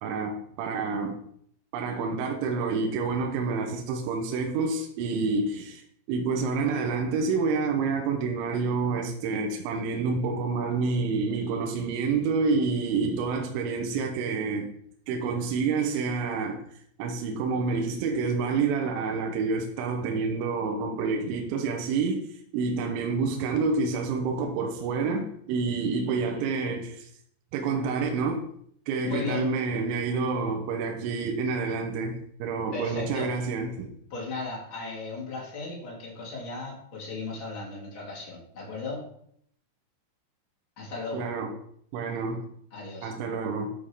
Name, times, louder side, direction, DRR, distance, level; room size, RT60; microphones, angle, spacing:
voice 1, 0.0-1.2 1.7-5.8 6.1-14.7 15.1-16.6 17.0-22.3 22.5-27.1 27.5-28.4 28.9-33.9 41.1-41.5 41.9-42.4 43.0-43.7, right 4 dB, 85° right, 3.2 m, -28 dB
voice 2, 29.0-29.5 32.7-33.3 34.1-39.0 40.8-41.3 42.7-43.1, left 4 dB, 35° left, 2.3 m, -36 dB
10.5 x 3.7 x 4.8 m
omnidirectional pair, 5.5 m